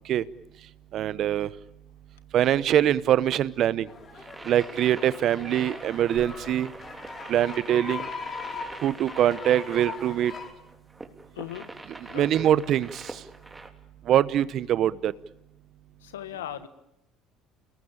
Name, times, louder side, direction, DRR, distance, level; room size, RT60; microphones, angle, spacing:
voice 1, 0.9-1.5 2.3-3.9 4.5-6.7 7.3-8.1 8.8-10.3 12.1-13.0 14.1-15.1, right 11 dB, 55° right, 19 dB, 0.9 m, -23 dB
sound 1, 3.9-10.5, left 4 dB, 40° left, 5.4 m, -40 dB
sound 2, 4.1-13.7, right 2 dB, 15° right, 3.3 m, -44 dB
voice 2, 11.3-11.7 12.1-12.5 16.0-16.7, left 11 dB, 85° left, 12 dB, 1.5 m, -38 dB
29.5 x 19.5 x 8.9 m, 0.88 s
hypercardioid pair, 65°, 0 cm